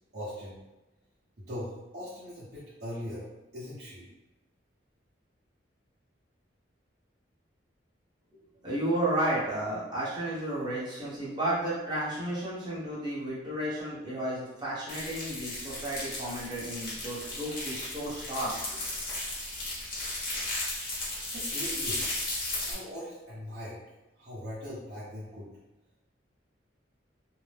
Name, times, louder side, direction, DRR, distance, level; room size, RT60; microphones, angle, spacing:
voice 1, 0.1-0.6 1.4-3.3 3.5-4.1 21.3-22.2 22.7-23.8 24.2-25.5, equal, 55° right, -12 dB, 0.9 m, -40 dB
voice 2, 8.3-18.8, right 1 dB, 25° right, -9 dB, 1.0 m, -33 dB
sound 1, 14.9-22.7, left 2 dB, 50° left, 0.9 m, -35 dB
2.7 x 2.0 x 3.3 m, 1.0 s
head